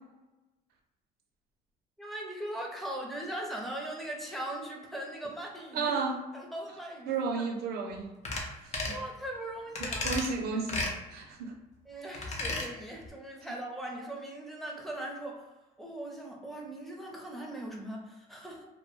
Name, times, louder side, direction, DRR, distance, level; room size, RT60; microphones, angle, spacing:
voice 1, 2.0-5.9 6.3-7.4 8.5-10.1 11.9-15.4 15.8-18.7, right 1 dB, ahead, -1 dB, 0.6 m, -40 dB
voice 2, 5.7-6.2 7.1-8.1 8.4-8.5 8.8-8.9 9.8-11.5, right 4 dB, 70° right, 3 dB, 0.5 m, -33 dB
sound 1, 8.2-8.5 8.7-9.0 9.8-10.3 10.7-10.9 12.1-12.7 13.0-13.1, left 2 dB, 40° left, 0.6 m, -33 dB
2.2 x 2.1 x 3.0 m, 1.0 s
cardioid pair, 110°, 17 cm